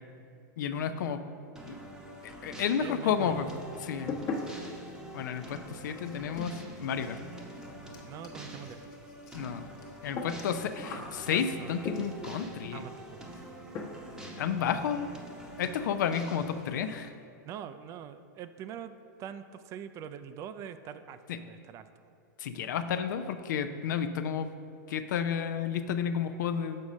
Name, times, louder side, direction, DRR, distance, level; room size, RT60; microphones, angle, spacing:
voice 1, 0.6-1.2 1.7-1.8 2.2-3.5 3.8-4.1 5.1-7.2 9.3-9.7 10.0-12.8 14.4-15.1 15.6-17.1 21.3-21.4 22.4-24.5 24.9-26.8, left 7 dB, 70° left, 10 dB, 0.5 m, -31 dB
sound 1, 1.6-17.1, right 1 dB, 5° right, 0.8 m, -46 dB
sound 2, 2.6-3.2 3.5-12.4 13.3-13.5 13.7-14.2 14.5-14.6 15.0-15.1 15.4-15.5 15.8-16.3, left 3 dB, 35° left, 1.0 m, -42 dB
voice 2, 2.8-3.5 8.0-8.8 11.3-11.8 12.7-13.3 17.5-18.9 19.2-21.9, right 9 dB, 30° right, 11 dB, 0.3 m, -43 dB
6.4 x 4.2 x 6.1 m, 2.5 s
hypercardioid pair, 130°, 10 cm